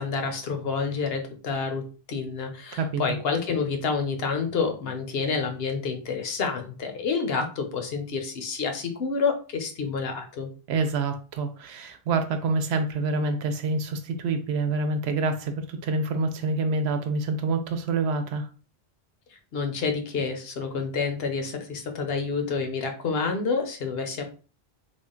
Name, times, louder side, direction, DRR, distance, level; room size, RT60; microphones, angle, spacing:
voice 1, 0.0-10.5 19.5-24.2, left 5 dB, 75° left, 5 dB, 0.9 m, -28 dB
voice 2, 2.7-3.2 10.7-18.5, right 3 dB, 85° right, 8 dB, 0.9 m, -27 dB
3.5 x 2.2 x 3.7 m, 0.38 s
omnidirectional pair, 1.0 m